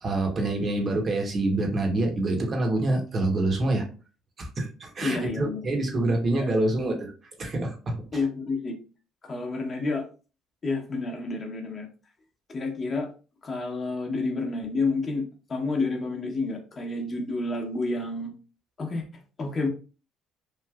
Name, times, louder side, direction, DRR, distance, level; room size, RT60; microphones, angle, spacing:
voice 1, 0.0-3.9 4.4-7.1 7.4-8.2, right 2 dB, 40° right, 2 dB, 1.0 m, -26 dB
voice 2, 5.0-5.6 6.3-6.5 8.1-8.8 9.2-10.1 10.6-11.9 12.5-13.1 13.4-15.2 15.5-18.3 18.8-19.1 19.4-19.7, left 3 dB, 40° left, 2 dB, 0.9 m, -29 dB
3.1 x 2.5 x 2.3 m, 0.36 s
supercardioid pair, 80°, 0 cm